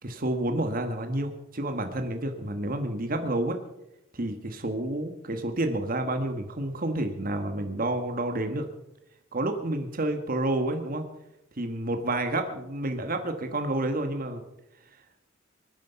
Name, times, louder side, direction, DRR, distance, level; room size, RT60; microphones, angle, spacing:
voice 1, 0.0-3.6 4.1-8.6 9.3-11.0 11.6-14.4, right 1 dB, 45° right, 6 dB, 1.4 m, -29 dB
23.0 x 9.7 x 5.7 m, 0.88 s
head